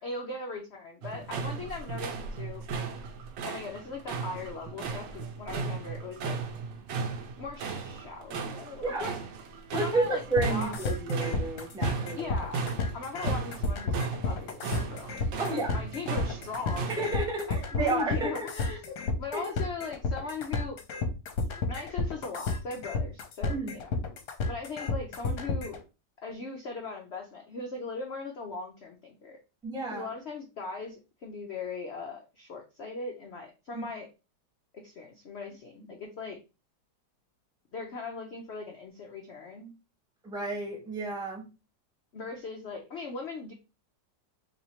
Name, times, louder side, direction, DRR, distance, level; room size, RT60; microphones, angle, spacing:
voice 1, 0.0-2.6 3.4-6.4 7.4-9.2 9.7-10.7 12.1-12.7 12.9-17.2 17.5-20.8 21.7-23.9 24.5-25.8 26.2-29.4 29.9-34.1 34.7-36.4 37.7-39.7 42.1-43.5, left 4 dB, 90° left, 2 dB, 0.5 m, -39 dB
sound 1, 1.0-17.2, right 5 dB, 80° right, 1.3 m, -36 dB
voice 2, 8.8-9.2 9.7-12.3 15.4-15.8 16.9-18.5 19.3-19.4 23.5-23.8 29.6-30.1 33.7-33.9 40.2-41.4, right 3 dB, 5° right, -1 dB, 0.8 m, -31 dB
sound 2, 10.4-25.8, left 3 dB, 70° left, 1.2 m, -31 dB
3.2 x 2.7 x 4.3 m, 0.29 s
omnidirectional pair, 2.0 m